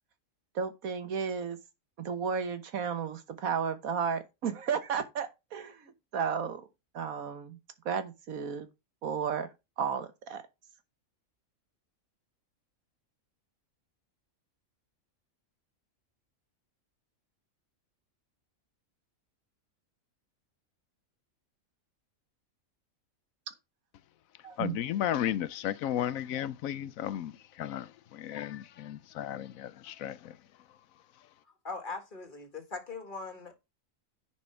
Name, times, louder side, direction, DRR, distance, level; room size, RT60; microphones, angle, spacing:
voice 1, 0.5-1.6 2.0-6.7 6.9-7.6 7.8-8.7 9.0-9.5 9.8-10.4 24.4-24.8, right 6 dB, 85° right, 1.6 m, -33 dB
voice 2, 24.6-30.4, left 11 dB, 80° left, 1.0 m, -34 dB
voice 3, 31.6-33.6, left 4 dB, 35° left, 1.9 m, -40 dB
10.5 x 4.5 x 4.5 m
omnidirectional pair, 1.4 m